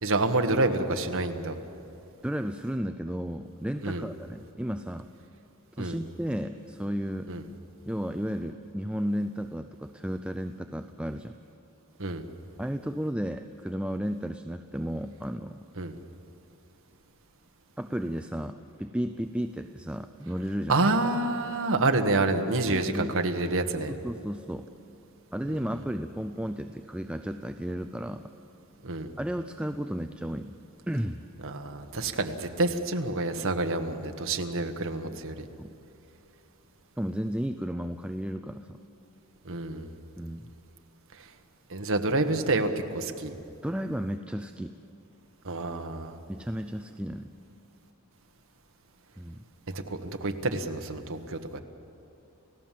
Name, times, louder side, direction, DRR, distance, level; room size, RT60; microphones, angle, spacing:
voice 1, 0.0-1.6 3.8-4.1 5.8-6.0 7.3-7.4 12.0-12.2 15.8-15.9 20.7-23.9 28.8-29.1 31.4-35.5 39.4-39.9 41.7-43.4 45.4-46.2 49.7-51.6, right 2 dB, 60° right, 6 dB, 1.4 m, -28 dB
voice 2, 2.2-5.1 5.8-7.3 7.9-11.3 12.6-15.6 17.8-20.8 22.7-23.2 23.9-24.7 25.3-28.3 29.2-30.5 30.9-31.2 35.0-35.2 35.6-35.7 37.0-38.8 40.2-40.5 43.6-44.8 46.3-47.3 49.2-49.4, equal, 5° right, 8 dB, 0.5 m, -33 dB
30.0 x 16.0 x 7.5 m, 2.8 s
head